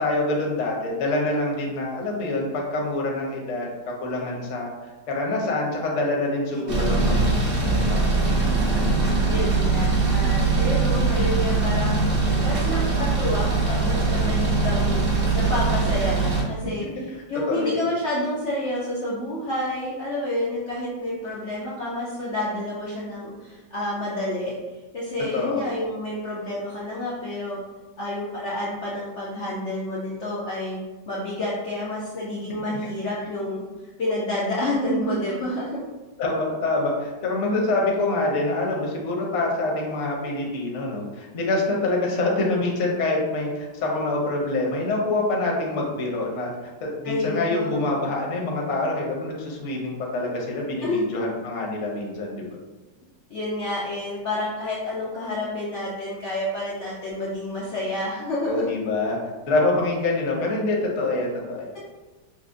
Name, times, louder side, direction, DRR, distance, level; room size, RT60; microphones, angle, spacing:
voice 1, 0.0-3.7 4.0-4.7 5.1-8.2 16.6-16.7 17.5-17.8 25.3-25.7 32.5-32.8 36.2-46.5 46.8-52.4 58.5-59.2 59.5-61.7, left 2 dB, 55° left, -2 dB, 0.8 m, -26 dB
voice 2, 6.5-7.1 9.3-12.1 12.4-24.5 24.9-27.6 28.0-30.8 31.1-33.6 34.0-35.8 47.0-47.9 50.8-51.1 53.3-58.7, left 1 dB, 85° left, -7 dB, 0.6 m, -29 dB
sound 1, 6.7-16.4, right 3 dB, 65° right, 0.5 m, -22 dB
5.9 x 2.1 x 2.5 m, 1.2 s
omnidirectional pair, 2.1 m